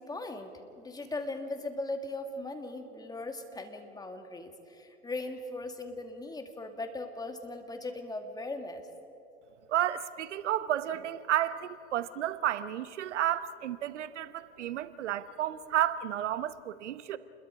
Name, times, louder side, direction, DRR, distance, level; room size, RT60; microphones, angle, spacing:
voice 1, 0.0-8.8, left 2 dB, 10° left, 2.1 m, -39 dB
voice 2, 9.7-17.2, right 11 dB, 80° right, 1.0 m, -32 dB
29.5 x 21.5 x 4.9 m
hypercardioid pair, 115°, 35 cm